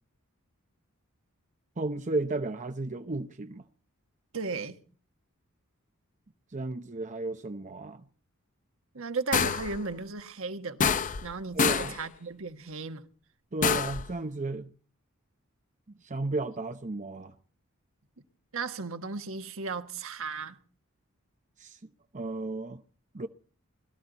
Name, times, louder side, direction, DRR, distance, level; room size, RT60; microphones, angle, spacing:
voice 1, 1.8-3.6 6.5-8.1 11.5-12.0 13.5-14.7 16.0-17.3 21.6-21.8 22.1-22.8 23.1-23.3, right 2 dB, 35° right, 0.8 m, -33 dB
voice 2, 4.3-4.8 8.9-10.9 11.2-13.1 18.5-20.6, right 4 dB, 65° right, 1.5 m, -35 dB
sound 1, 9.3-9.8 10.8-11.3 11.6-12.0 13.6-14.1, left 6 dB, 35° left, 0.6 m, -26 dB
21.5 x 14.0 x 4.1 m
head